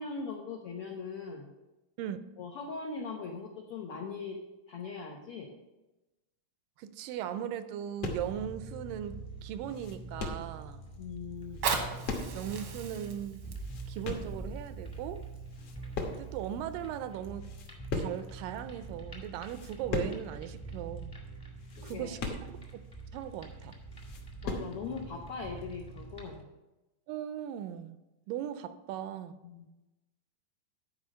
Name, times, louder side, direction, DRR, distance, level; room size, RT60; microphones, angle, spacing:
voice 1, 0.0-1.5 2.4-4.4 4.7-5.6 11.0-11.6 21.8-22.3 24.4-26.5 29.4-29.6, left 4 dB, 80° left, 1.2 m, -40 dB
voice 2, 6.8-10.8 12.3-13.5 13.9-15.3 16.1-17.5 17.9-21.1 21.8-22.8 23.1-23.8 27.1-28.0 28.3-29.4, right 10 dB, 80° right, 2.1 m, -38 dB
sound 1, 8.0-8.5 9.0-9.1 9.4-10.6 11.5-12.6 12.9-13.0 13.4-14.4 15.0-15.2 15.5-16.5 16.8-16.9 17.3-18.4 18.9-19.0 19.4-20.3 20.6-20.7 21.0-21.1 21.6-22.9 23.4-23.5 23.8-24.8, left 3 dB, 60° left, 1.8 m, -38 dB
sound 2, 8.1-26.4, right 3 dB, 15° left, 0.8 m, -45 dB
Fire, 11.4-16.3 17.0-17.1, right 5 dB, 65° right, 1.3 m, -38 dB
10.5 x 4.9 x 6.3 m
omnidirectional pair, 4.0 m